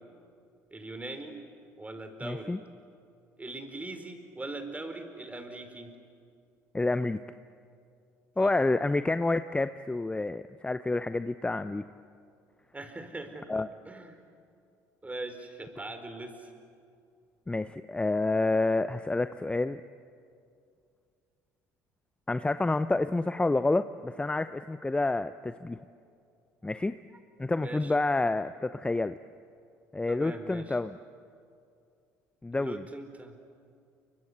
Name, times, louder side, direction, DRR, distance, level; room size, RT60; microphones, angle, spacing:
voice 1, 0.7-1.4 1.8-2.6 3.4-5.9 8.4-8.5 12.7-13.5 13.9-14.2 15.0-16.5 27.5-27.9 30.1-30.8 32.6-33.3, right 2 dB, 15° right, 8 dB, 4.5 m, -41 dB
voice 2, 2.2-2.6 6.7-7.2 8.4-11.8 13.5-13.7 17.5-19.8 22.3-25.8 26.6-26.9 27.4-29.2 29.9-31.0 32.4-32.8, left 2 dB, 15° left, 12 dB, 0.8 m, -28 dB
29.0 x 25.0 x 8.2 m, 2.4 s
hypercardioid pair, 60°, 8 cm